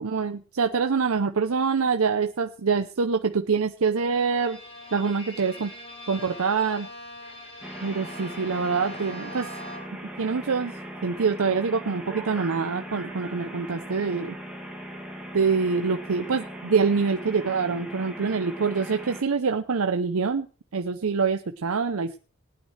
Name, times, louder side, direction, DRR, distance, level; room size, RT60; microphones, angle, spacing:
voice 1, 0.0-4.6 4.9-5.7 6.1-6.9 7.8-9.5 10.2-10.7 11.0-14.3 15.3-20.5 20.7-22.2, right 5 dB, 70° right, 6 dB, 0.6 m, -25 dB
Bowed string instrument, 4.1-10.1, left 1 dB, 25° left, 5.0 m, -42 dB
sound 1, 7.6-19.2, right 1 dB, 5° right, 2.1 m, -39 dB
20.0 x 9.1 x 3.3 m, 0.36 s
head